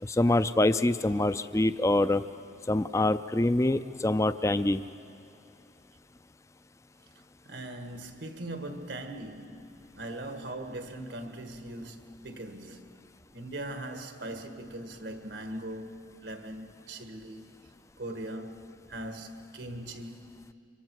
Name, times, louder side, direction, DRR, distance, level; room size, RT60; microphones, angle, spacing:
voice 1, 0.0-2.2 2.7-4.8, left 1 dB, 15° left, 0.4 m, -25 dB
voice 2, 7.4-13.0 13.3-17.7 18.0-20.3, right 1 dB, 80° right, 1.6 m, -40 dB
25.5 x 24.0 x 4.7 m
head